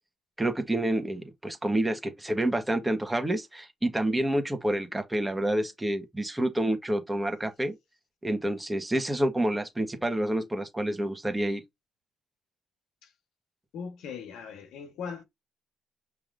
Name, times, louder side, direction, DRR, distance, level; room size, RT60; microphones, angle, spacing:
voice 1, 0.4-7.8 8.2-11.6, right 1 dB, 10° right, 1.4 m, -28 dB
voice 2, 13.7-15.2, left 6 dB, 85° left, 1.3 m, -39 dB
5.7 x 3.4 x 2.6 m
cardioid pair, 90°, 0 cm